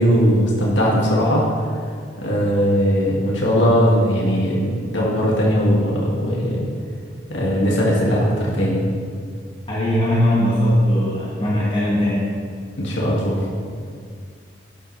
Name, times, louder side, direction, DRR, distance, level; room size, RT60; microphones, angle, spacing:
voice 1, 0.0-1.5 2.2-6.6 7.3-8.8 12.8-13.5, equal, 75° left, -4 dB, 2.2 m, -19 dB
voice 2, 9.7-12.3, equal, 30° left, -7 dB, 2.0 m, -19 dB
12.0 x 10.0 x 3.3 m, 2.1 s
head